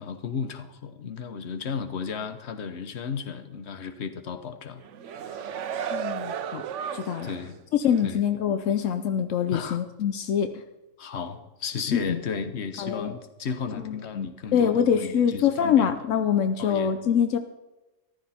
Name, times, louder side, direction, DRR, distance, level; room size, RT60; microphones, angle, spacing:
voice 1, 0.0-4.8 5.2-5.6 7.2-7.6 8.0-8.2 9.5-9.8 11.0-15.9 16.6-16.9, left 6 dB, 60° left, 9 dB, 1.3 m, -34 dB
sound 1, 4.8-7.5 7.9-8.1, right 8 dB, 75° right, 1.0 m, -34 dB
voice 2, 5.9-6.6 6.9-7.3 7.7-10.5 11.9-12.2 12.8-13.1 13.8-17.4, left 8 dB, 85° left, 9 dB, 1.1 m, -24 dB
14.5 x 13.0 x 4.3 m, 1.0 s
omnidirectional pair, 1.3 m